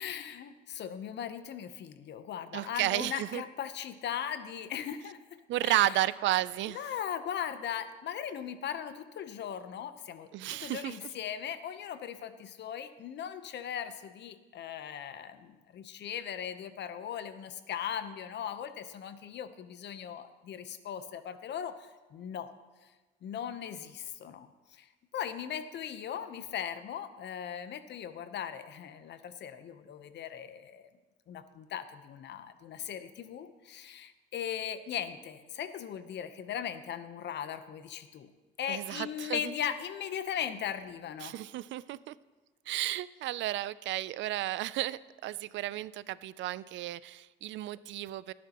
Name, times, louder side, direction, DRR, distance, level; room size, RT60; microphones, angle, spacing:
voice 1, 0.0-5.2 5.6-5.9 6.7-10.3 10.6-22.5 22.8-22.9 23.2-30.9 31.3-38.3 38.6-41.3, left 9 dB, 55° left, 11 dB, 0.9 m, -38 dB
voice 2, 2.5-3.4 5.5-6.8 10.3-11.1 38.7-39.5 41.2-42.1 42.7-48.3, right 15 dB, 65° right, 18 dB, 0.4 m, -33 dB
17.5 x 9.5 x 3.0 m, 1.2 s
cardioid pair, 105°, 21 cm